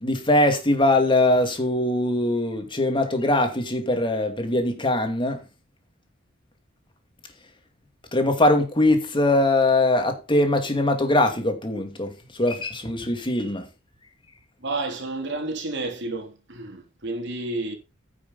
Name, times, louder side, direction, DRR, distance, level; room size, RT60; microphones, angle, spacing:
voice 1, 0.0-5.4 8.1-13.7, left 1 dB, 25° left, 2.5 m, -22 dB
voice 2, 14.6-17.7, right 2 dB, 60° right, 3.3 m, -30 dB
9.9 x 6.6 x 5.4 m
head